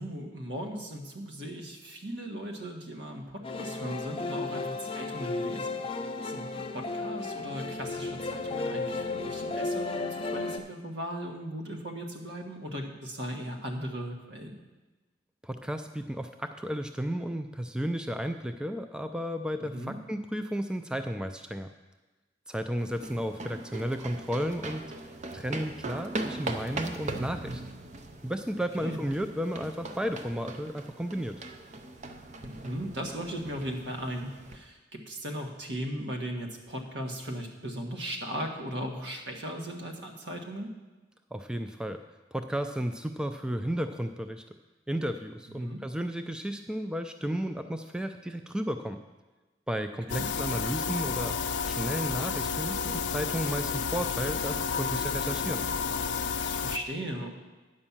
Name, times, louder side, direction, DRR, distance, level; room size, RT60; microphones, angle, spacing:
voice 1, 0.0-5.8 6.2-6.5 6.7-14.6 19.7-20.0 28.8-29.0 32.4-40.7 45.6-45.8 50.1-50.2 56.4-57.3, equal, 70° right, 2 dB, 1.5 m, -37 dB
sound 1, 3.4-10.6, left 3 dB, 30° left, 0.6 m, -34 dB
voice 2, 15.4-21.7 22.5-24.8 25.3-27.6 28.2-31.4 41.3-42.0 42.3-44.4 44.9-49.0 49.7-51.4 51.6-55.6, equal, 5° right, 7 dB, 0.3 m, -33 dB
sound 2, 22.8-34.6, right 2 dB, 40° right, 0.7 m, -40 dB
sound 3, 50.1-56.8, left 6 dB, 80° left, 0.5 m, -31 dB
9.8 x 5.3 x 7.2 m, 1.2 s
head